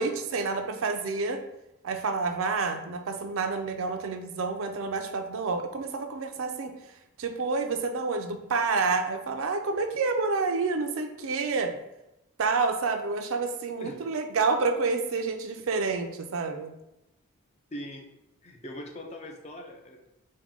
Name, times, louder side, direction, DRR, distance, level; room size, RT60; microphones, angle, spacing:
voice 1, 0.0-1.4 1.8-6.7 7.2-11.7 12.4-16.7, right 4 dB, 65° right, 6 dB, 0.4 m, -28 dB
voice 2, 17.7-18.1 18.4-20.1, equal, 30° left, 2 dB, 0.5 m, -41 dB
4.6 x 2.2 x 3.6 m, 0.90 s
head